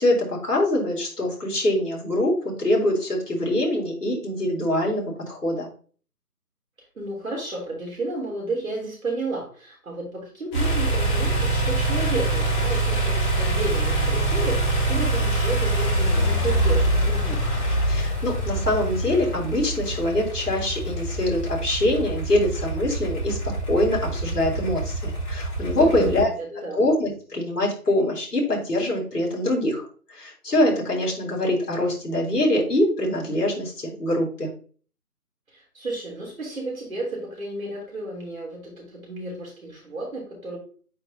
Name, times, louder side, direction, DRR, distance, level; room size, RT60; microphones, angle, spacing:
voice 1, 0.0-5.7 17.9-26.3 26.7-34.5, left 1 dB, 75° left, -2 dB, 3.9 m, -24 dB
voice 2, 7.0-17.4 25.8-26.8 35.5-40.6, right 2 dB, 60° right, -1 dB, 3.5 m, -32 dB
sound 1, 10.5-26.2, right 1 dB, 5° left, 1.7 m, -25 dB
8.8 x 4.9 x 2.8 m, 0.40 s
figure-of-eight pair, 160°, 47 cm